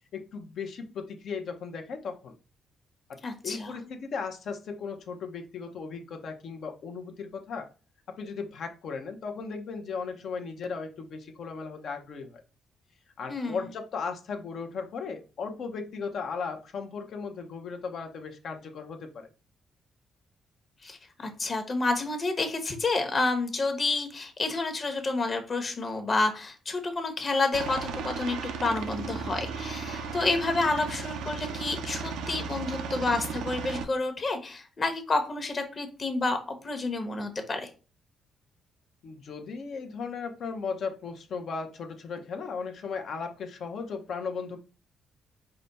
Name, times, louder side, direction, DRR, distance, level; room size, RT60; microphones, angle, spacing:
voice 1, 0.1-2.3 3.4-7.7 8.1-12.4 13.2-19.3 39.0-44.6, left 5 dB, 65° left, 4 dB, 0.8 m, -36 dB
voice 2, 3.2-3.8 13.3-13.7 20.8-37.7, left 3 dB, 40° left, 6 dB, 1.1 m, -29 dB
Aircraft, 27.5-33.8, right 5 dB, 90° right, 0.5 m, -35 dB
5.0 x 2.3 x 4.0 m, 0.34 s
cardioid pair, 80°, 0 cm